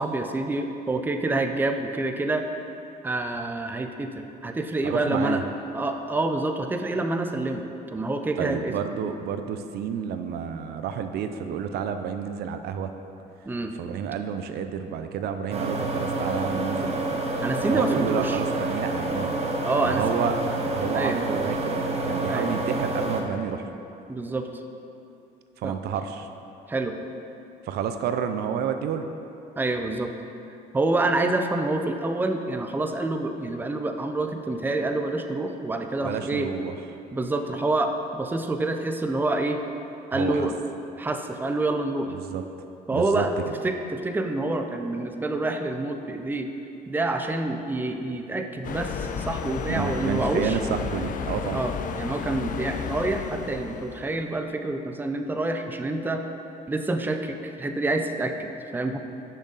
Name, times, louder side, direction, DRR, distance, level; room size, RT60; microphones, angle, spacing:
voice 1, 0.0-2.4 3.0-5.4 5.7-7.6 7.9-8.7 13.4-13.7 17.4-18.4 19.6-20.0 20.9-21.2 22.3-22.4 24.1-24.5 25.6-25.8 26.7-27.0 29.6-30.1 30.7-36.5 37.1-39.6 40.1-40.5 41.0-42.1 42.9-43.3 43.6-46.5 46.9-50.6 51.5-56.2 56.7-59.0, right 2 dB, 10° right, 5 dB, 0.5 m, -27 dB
voice 2, 4.8-5.4 8.4-12.9 13.7-16.9 17.7-19.3 19.8-20.4 20.7-23.7 25.6-26.3 27.6-29.1 36.0-36.7 40.1-40.5 42.1-42.4 42.9-43.2 49.7-51.6, right 7 dB, 70° right, 8 dB, 0.5 m, -30 dB
sound 1, 15.5-23.2, right 2 dB, 40° right, 1.0 m, -28 dB
sound 2, 48.6-54.2, left 6 dB, 55° left, 0.6 m, -33 dB
10.0 x 6.2 x 4.0 m, 2.8 s
cardioid pair, 110°, 17 cm